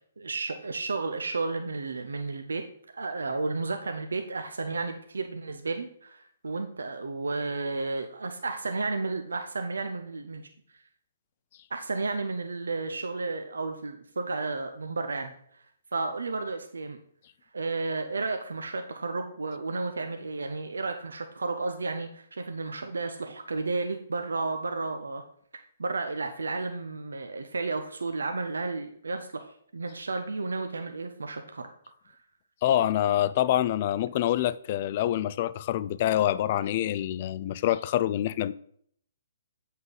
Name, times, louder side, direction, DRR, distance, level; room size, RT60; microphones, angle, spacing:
voice 1, 0.2-2.6 2.9-10.5 11.7-15.7 15.9-17.0 17.5-25.2 25.8-31.7 32.0-32.2, right 3 dB, 75° right, 0.6 m, -32 dB
voice 2, 32.6-38.5, left 12 dB, 40° left, 0.3 m, -26 dB
7.9 x 5.5 x 3.9 m
figure-of-eight pair, 130°, 0 cm